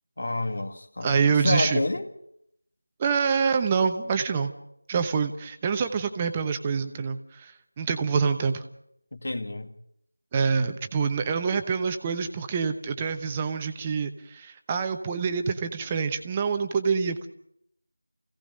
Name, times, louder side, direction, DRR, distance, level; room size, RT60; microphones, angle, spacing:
voice 1, 0.2-2.1 9.1-9.7, left 2 dB, 50° left, 2.0 m, -29 dB
voice 2, 1.0-1.8 3.0-4.5 4.9-8.6 10.3-17.3, right 5 dB, 15° right, 1.0 m, -26 dB
29.0 x 17.0 x 5.3 m
figure-of-eight pair, 170°, 0 cm